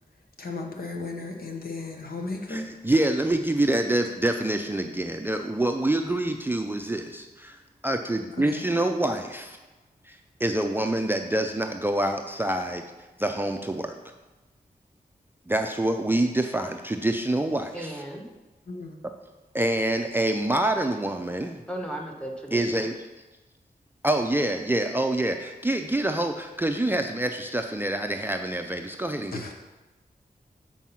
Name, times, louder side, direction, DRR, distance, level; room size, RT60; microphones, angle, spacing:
voice 1, 0.4-2.7 8.4-8.6 18.7-19.0 29.3-29.5, left 3 dB, 70° left, 1 dB, 1.1 m, -35 dB
voice 2, 2.5-9.6 10.1-12.8 13.2-14.0 15.5-17.9 19.5-21.6 22.5-22.9 24.0-29.4, right 1 dB, 15° right, 5 dB, 0.4 m, -26 dB
voice 3, 17.7-18.3 21.7-22.8, right 1 dB, 5° left, 0 dB, 1.2 m, -35 dB
7.5 x 4.6 x 5.7 m, 1.1 s
wide cardioid pair, 95°, 16 cm